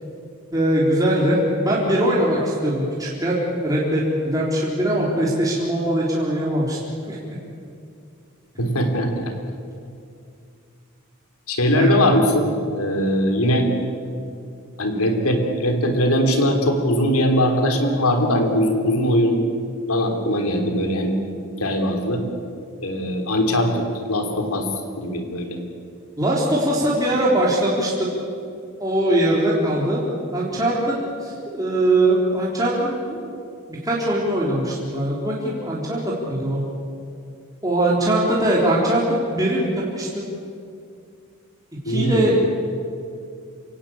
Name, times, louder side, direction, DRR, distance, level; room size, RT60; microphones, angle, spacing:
voice 1, 0.5-1.4 1.6-6.8 7.1-7.2 11.7-12.0 26.2-28.2 28.8-30.0 30.3-33.2 33.7-36.6 37.6-40.3 41.9-42.3, right 1 dB, 15° right, -5 dB, 3.7 m, -21 dB
voice 2, 8.6-9.3 11.5-13.7 14.8-19.4 19.9-21.2 21.6-22.2 22.8-24.7 25.0-25.6 41.9-42.3, equal, 85° left, 4 dB, 3.7 m, -21 dB
28.0 x 17.5 x 8.8 m, 2.4 s
head